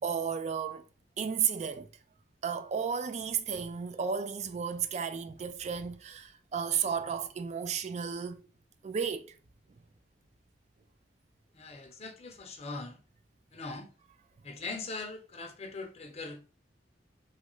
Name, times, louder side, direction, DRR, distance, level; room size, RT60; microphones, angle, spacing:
voice 1, 0.0-0.8 1.2-1.9 2.4-8.5 8.8-9.4, right 7 dB, 40° right, 0.3 m, -33 dB
voice 2, 11.5-13.0 13.5-13.9 14.4-16.4, left 3 dB, 35° left, 0.5 m, -41 dB
3.1 x 2.4 x 3.0 m
head